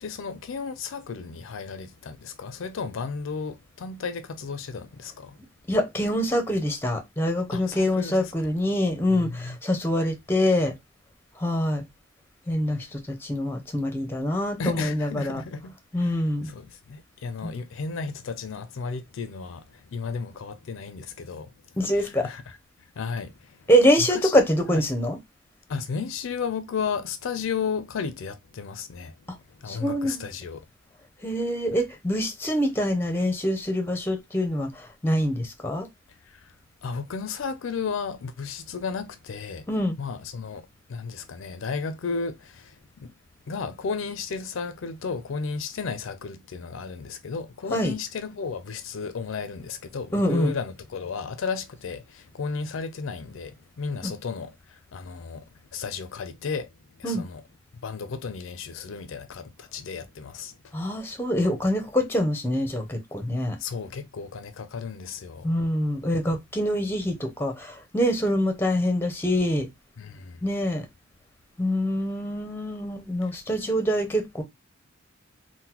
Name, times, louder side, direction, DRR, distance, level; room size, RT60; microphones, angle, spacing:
voice 1, 0.0-5.4 7.5-8.5 9.1-9.6 12.6-13.0 14.6-23.7 24.0-24.4 24.7-24.8 25.7-30.6 36.1-36.5 36.8-39.7 40.0-43.1 43.5-57.4 57.8-60.9 63.6-65.8 70.0-70.4, left 5 dB, 70° left, 0.4 m, -34 dB
voice 2, 5.7-10.7 11.4-11.9 12.5-15.4 15.9-16.5 17.4-17.5 21.8-22.3 23.7-25.2 29.7-30.3 31.2-35.9 39.7-40.0 47.7-47.9 50.1-50.5 54.0-54.1 57.0-57.3 60.7-63.6 65.4-69.7 70.4-70.9 71.6-74.4, equal, 10° left, 0.6 m, -25 dB
3.7 x 2.1 x 2.8 m
head